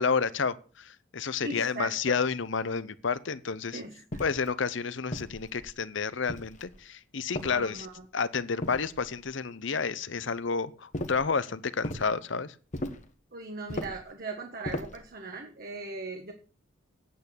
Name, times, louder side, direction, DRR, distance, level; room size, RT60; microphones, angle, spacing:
voice 1, 0.0-3.8 4.2-7.9 8.1-12.6, left 5 dB, 65° left, 0.7 m, -30 dB
voice 2, 1.4-2.2 3.7-3.9 7.5-7.9 13.3-16.3, right 3 dB, 50° right, 1.4 m, -39 dB
sound 1, 4.1-4.5 5.1-5.8 6.3-6.8 7.3-8.0 8.6-9.3 10.9-11.3 11.8-12.1 12.7-13.1 13.7-14.1 14.6-15.1, left 1 dB, 40° left, 1.2 m, -37 dB
9.3 x 8.4 x 6.8 m
head